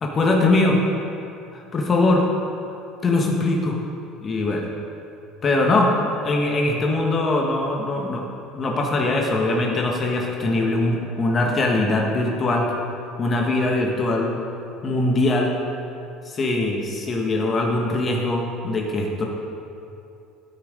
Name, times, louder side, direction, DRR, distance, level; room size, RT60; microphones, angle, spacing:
voice 1, 0.0-0.8 1.5-2.3 3.0-3.8 4.2-4.7 5.4-5.9 6.2-8.2 8.5-12.8 13.2-14.4 14.8-15.5 16.2-19.2, left 2 dB, 35° left, 0 dB, 1.4 m, -21 dB
12.5 x 6.4 x 5.0 m, 2.7 s
supercardioid pair, 95°, 0 cm